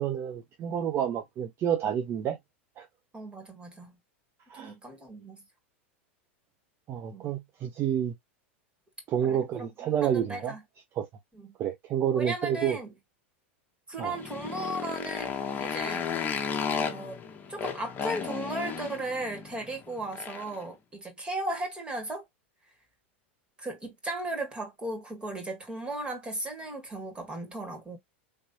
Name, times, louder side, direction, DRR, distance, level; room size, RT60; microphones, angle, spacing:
voice 1, 0.0-2.4 2.8-2.9 4.5-4.7 6.9-8.1 9.1-10.5 11.0-11.1 11.6-12.8 14.0-14.2, right 9 dB, 40° right, 0.7 m, -29 dB
voice 2, 3.1-4.0 4.6-5.4 7.1-7.3 9.2-9.7 10.0-10.6 11.4-11.5 12.1-12.9 13.9-15.3 15.6-16.1 16.8-17.2 17.5-22.3 23.6-28.0, right 1 dB, 15° right, 2.0 m, -36 dB
Motorcycle, 14.0-20.6, left 6 dB, 30° left, 1.0 m, -34 dB
3.4 x 3.0 x 2.8 m
hypercardioid pair, 100°, 7 cm